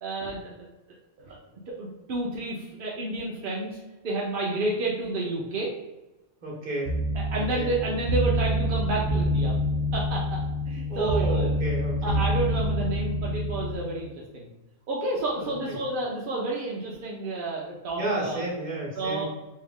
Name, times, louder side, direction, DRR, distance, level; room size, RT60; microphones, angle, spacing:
voice 1, 0.0-0.4 1.3-1.4 1.7-3.8 4.0-5.7 7.1-9.5 9.9-10.2 10.7-11.7 12.0-14.5 14.9-18.4 19.0-19.3, right 2 dB, 60° right, -3 dB, 0.6 m, -30 dB
voice 2, 6.4-7.0 7.3-7.7 10.9-12.2 15.4-15.5 17.9-19.3, right 2 dB, 35° right, -4 dB, 1.0 m, -31 dB
sound 1, 6.8-13.7, equal, 80° right, 1.1 m, -27 dB
3.2 x 2.7 x 3.5 m, 1.0 s
omnidirectional pair, 1.5 m